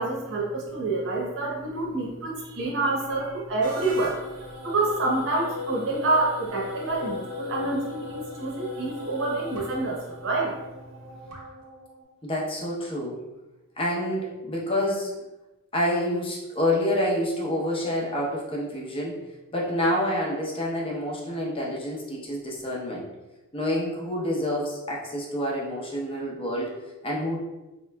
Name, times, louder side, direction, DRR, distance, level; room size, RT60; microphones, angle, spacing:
voice 1, 0.0-4.2 4.6-10.5, right 2 dB, 60° right, -4 dB, 0.8 m, -27 dB
sound 1, 3.6-12.0, left 3 dB, 90° right, 0.8 m, -38 dB
voice 2, 12.2-13.2 13.8-15.1 15.7-19.2 19.5-23.1 23.5-26.7 27.0-27.4, left 1 dB, 25° left, -3 dB, 0.7 m, -28 dB
4.2 x 3.0 x 2.2 m, 1.1 s
head